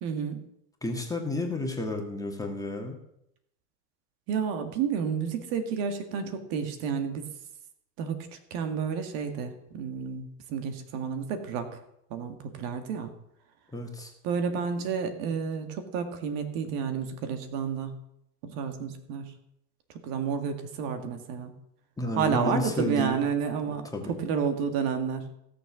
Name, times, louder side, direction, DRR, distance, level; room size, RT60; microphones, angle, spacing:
voice 1, 0.0-0.4 4.3-7.3 8.0-11.8 12.1-13.1 14.2-17.9 18.4-19.3 19.9-21.5 22.1-25.2, right 6 dB, 55° right, 7 dB, 2.1 m, -30 dB
voice 2, 0.8-3.0 13.7-14.1 22.0-23.2 23.9-24.1, left 1 dB, 5° left, 1 dB, 1.9 m, -31 dB
16.5 x 6.9 x 6.2 m, 0.77 s
hypercardioid pair, 120°, 49 cm